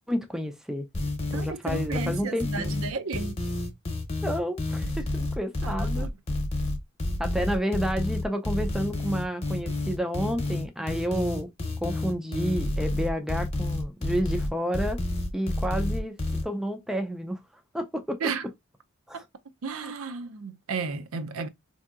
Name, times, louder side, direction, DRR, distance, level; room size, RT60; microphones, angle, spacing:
voice 1, 0.1-0.9 1.3-2.7 4.2-6.1 7.2-11.5 11.8-15.0 15.3-16.2 16.4-17.4 17.7-18.2 19.1-19.2 19.8-19.9, equal, ahead, 0.3 m, -30 dB
sound 1, 0.9-16.4, left 2 dB, 30° left, 0.8 m, -29 dB
voice 2, 1.3-3.4 5.6-6.1 18.2-18.5 19.1-19.2 19.6-21.5, right 5 dB, 75° right, 0.5 m, -33 dB
4.4 x 2.7 x 2.4 m
head